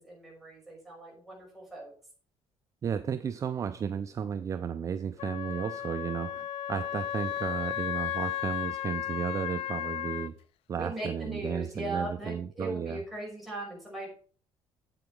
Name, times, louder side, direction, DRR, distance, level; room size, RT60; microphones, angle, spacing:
voice 1, 0.0-1.9 10.7-14.1, right 1 dB, ahead, 5.6 m, -38 dB
voice 2, 2.8-10.4 10.7-13.0, right 7 dB, 30° right, 0.4 m, -33 dB
Wind instrument woodwind instrument, 5.2-10.3, left 11 dB, 70° left, 0.5 m, -34 dB
8.6 x 8.0 x 4.8 m
cardioid pair, 155°, 10 cm